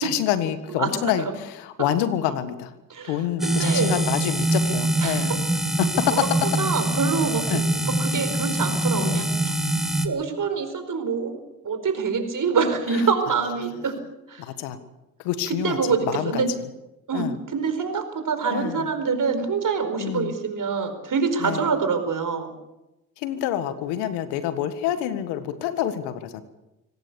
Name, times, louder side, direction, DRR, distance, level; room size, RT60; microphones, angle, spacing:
voice 1, 0.0-2.7 3.1-5.4 5.8-6.2 7.5-7.6 9.0-9.3 14.4-14.8 15.2-16.4 17.1-17.4 18.5-18.9 20.0-20.3 21.4-21.7 23.2-26.4, left 11 dB, 85° left, 11 dB, 1.6 m, -27 dB
voice 2, 0.8-1.3 2.9-4.1 5.0-5.4 6.1-6.2 6.6-7.5 7.9-9.3 9.6-9.7 10.0-11.4 11.6-14.0 14.3-14.4 15.5-16.5 17.1-22.5, right 5 dB, 50° right, 8 dB, 4.7 m, -26 dB
sound 1, 3.4-10.0, right 1 dB, ahead, 3.1 m, -24 dB
24.5 x 18.0 x 6.9 m, 0.96 s
hypercardioid pair, 45°, 40 cm